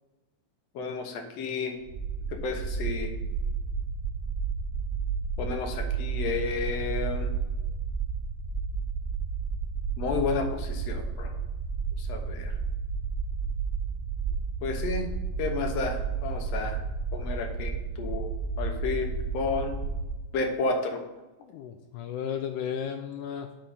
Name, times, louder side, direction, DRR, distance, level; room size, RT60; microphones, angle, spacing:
voice 1, 0.7-1.8 2.3-3.1 5.4-7.3 10.0-11.3 12.0-12.5 14.6-15.1 15.4-16.8 17.1-18.3 18.6-19.7 20.3-21.0, left 4 dB, 70° left, 4 dB, 1.6 m, -31 dB
sound 1, 1.9-20.1, right 5 dB, 45° right, 1.2 m, -32 dB
voice 2, 21.4-23.5, left 8 dB, 85° left, 6 dB, 1.8 m, -34 dB
6.1 x 5.6 x 6.5 m, 1.1 s
omnidirectional pair, 4.1 m